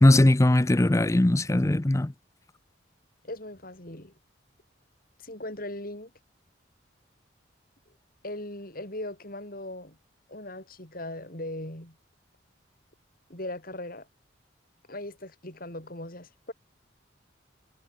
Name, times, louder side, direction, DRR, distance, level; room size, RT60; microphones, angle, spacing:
voice 1, 0.0-2.1, left 1 dB, 15° left, 0.5 m, -20 dB
voice 2, 3.2-4.1 5.2-6.1 8.2-10.0 10.3-12.0 13.3-14.1 14.9-16.5, left 1 dB, 50° left, 6.1 m, -39 dB
head